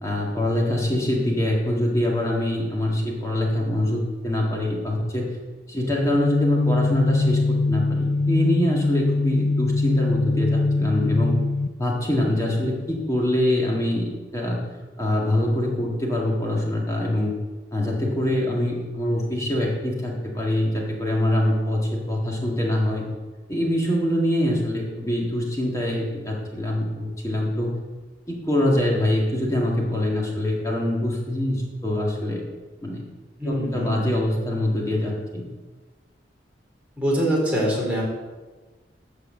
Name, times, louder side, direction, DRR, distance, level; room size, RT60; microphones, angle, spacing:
voice 1, 0.0-5.4 5.7-11.4 11.8-14.6 15.0-17.3 17.7-23.0 23.5-27.8 28.3-32.4 32.8-33.0 33.4-35.5, left 1 dB, 15° left, -2 dB, 2.0 m, -24 dB
sound 1, 6.1-11.7, left 3 dB, 60° left, 0.5 m, -22 dB
voice 2, 33.4-34.2 37.0-38.0, equal, 10° right, -4 dB, 3.2 m, -24 dB
13.0 x 4.8 x 7.7 m, 1.3 s
head